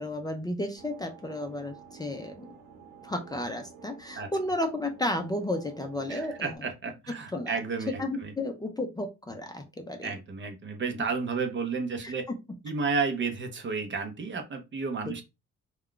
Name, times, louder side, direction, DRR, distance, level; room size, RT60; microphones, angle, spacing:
voice 1, 0.0-2.5 3.0-6.6 7.3-7.6 8.0-10.1 12.0-12.1 15.1-15.2, left 1 dB, 15° left, 4 dB, 0.5 m, -33 dB
sound 1, 0.8-6.6, right 6 dB, 90° right, 0.9 m, -51 dB
voice 2, 6.1-8.3 10.0-12.3 12.6-15.2, right 4 dB, 40° right, 7 dB, 0.6 m, -32 dB
2.3 x 2.2 x 3.6 m, 0.25 s
cardioid pair, 90°, 30 cm